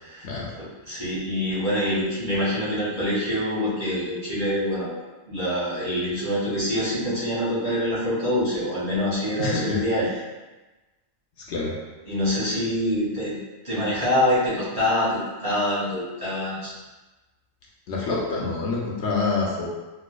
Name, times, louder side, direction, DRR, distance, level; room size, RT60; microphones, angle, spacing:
voice 1, 0.6-4.9 5.3-10.1 12.0-13.4 13.6-16.7, equal, 40° right, -11 dB, 1.6 m, -25 dB
voice 2, 9.4-9.8 11.5-11.7 17.9-19.7, left 3 dB, 70° left, -3 dB, 0.9 m, -26 dB
4.2 x 2.4 x 2.2 m, 1.2 s
omnidirectional pair, 1.3 m